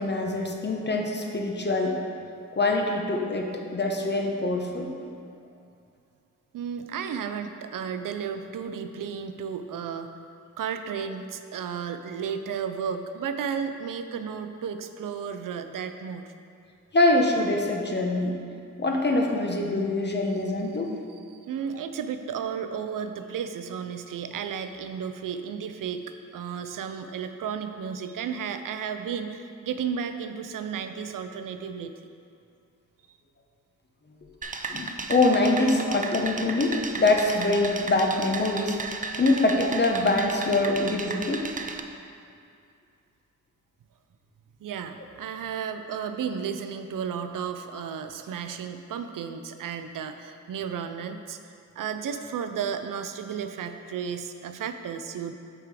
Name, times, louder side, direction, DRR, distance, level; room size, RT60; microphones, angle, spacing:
voice 1, 0.0-2.0 2.5-4.9 16.9-18.4 18.8-20.9 34.7-38.8 39.2-41.5, left 2 dB, 35° left, 2 dB, 0.8 m, -24 dB
voice 2, 6.5-10.2 10.6-16.3 21.3-31.9 33.1-33.2 34.4-34.6 44.6-55.3, right 7 dB, 80° right, 8 dB, 0.5 m, -33 dB
sound 1, 34.4-41.8, right 4 dB, 25° right, 0.4 m, -35 dB
8.0 x 3.6 x 4.7 m, 2.5 s
cardioid pair, 80°, 32 cm